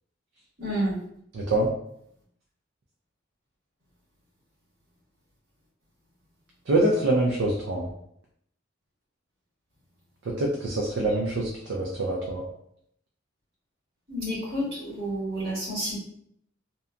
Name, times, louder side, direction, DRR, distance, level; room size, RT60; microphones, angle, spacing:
voice 1, 0.6-0.9 14.1-16.0, equal, 55° right, -8 dB, 1.5 m, -29 dB
voice 2, 1.3-1.7 6.7-7.9 10.3-12.4, right 2 dB, 70° right, 0 dB, 0.4 m, -25 dB
2.7 x 2.2 x 2.5 m, 0.71 s
head